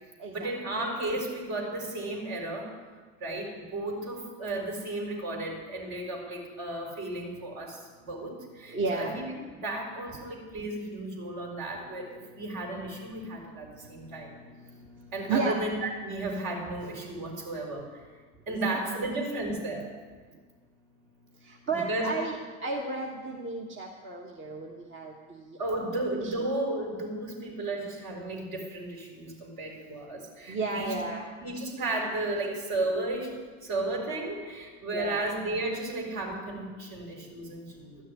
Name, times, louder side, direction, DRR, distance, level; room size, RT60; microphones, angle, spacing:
voice 1, 0.3-2.7 3.2-9.3 9.6-12.1 12.3-14.4 15.1-18.0 18.5-19.9 21.7-22.1 25.6-30.9 31.4-33.3 33.6-38.0, right 2 dB, 55° right, 0 dB, 4.4 m, -34 dB
voice 2, 8.7-9.2 15.3-15.6 18.5-19.0 21.5-22.3 22.6-25.9 26.2-26.3 30.5-31.3 34.9-35.2, right 3 dB, 30° right, 0 dB, 1.5 m, -33 dB
13.0 x 6.4 x 9.7 m, 1.5 s
supercardioid pair, 105°, 37 cm